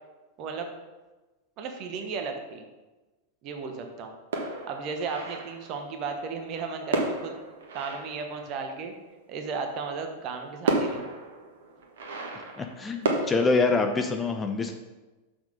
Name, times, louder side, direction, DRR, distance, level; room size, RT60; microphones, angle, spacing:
voice 1, 0.4-0.7 1.6-2.6 3.4-4.1 4.7-7.3 7.7-8.9 9.3-11.1, right 5 dB, 40° right, 4 dB, 1.2 m, -34 dB
sound 1, 4.3-5.8 6.9-8.9 10.1-10.2 10.7-13.3, right 3 dB, 60° right, 1.3 m, -32 dB
voice 2, 12.6-14.7, left 3 dB, 15° left, 5 dB, 0.7 m, -25 dB
6.6 x 6.0 x 5.1 m, 1.2 s
figure-of-eight pair, 90°, 0 cm